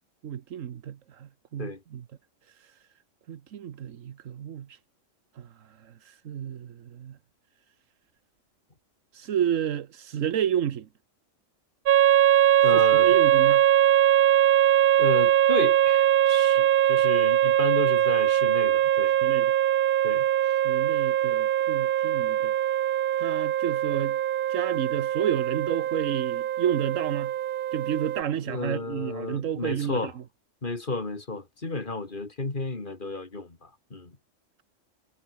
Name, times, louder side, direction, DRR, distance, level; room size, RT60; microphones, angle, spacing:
voice 1, 0.2-2.0 3.3-4.8 5.4-5.5 5.8-7.2 9.1-10.9 12.7-13.6 19.2-19.5 20.6-22.5 23.2-24.2 24.5-27.3 27.7-30.1, right 9 dB, 85° right, 1.3 m, -30 dB
sound 1, 11.9-28.2, right 11 dB, 65° right, 0.5 m, -22 dB
voice 2, 12.6-13.2 15.0-19.1 20.0-20.3 28.5-30.1 30.6-34.1, left 3 dB, 40° left, 2.9 m, -33 dB
omnidirectional pair, 1.3 m